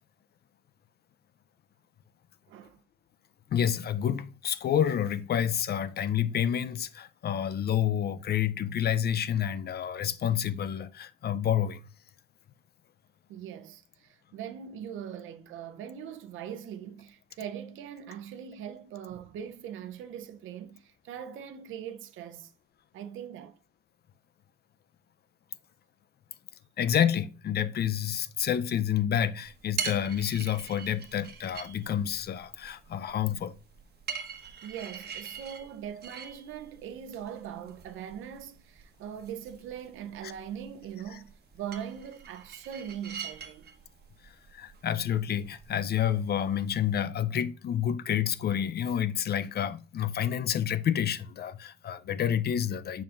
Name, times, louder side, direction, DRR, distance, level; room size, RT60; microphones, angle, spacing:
voice 1, 2.5-2.8 13.3-22.5 22.9-23.6 34.6-43.8, right 9 dB, 85° right, 0.7 m, -41 dB
voice 2, 3.5-11.8 26.8-33.6 40.2-40.3 44.2-53.0, left 9 dB, 55° left, 0.5 m, -29 dB
sound 1, 29.4-46.9, right 7 dB, 55° right, 1.2 m, -44 dB
6.9 x 5.6 x 2.5 m
cardioid pair, 90°, 20 cm